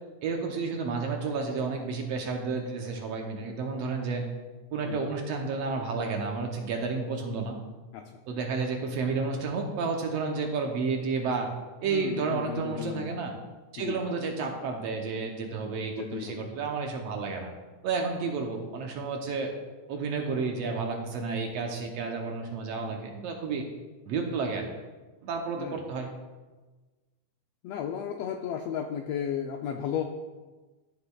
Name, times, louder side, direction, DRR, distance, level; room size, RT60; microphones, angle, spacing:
voice 1, 0.2-4.3 4.7-7.6 8.3-11.5 11.8-13.3 13.7-17.5 17.8-19.5 19.9-23.6 24.1-24.7 25.2-26.1, right 4 dB, 70° right, 2 dB, 1.7 m, -31 dB
voice 2, 11.8-13.1 13.8-14.0 15.9-16.5 25.6-25.8 27.6-30.0, left 8 dB, 85° left, 4 dB, 1.4 m, -34 dB
13.0 x 6.7 x 2.3 m, 1.3 s
omnidirectional pair, 3.3 m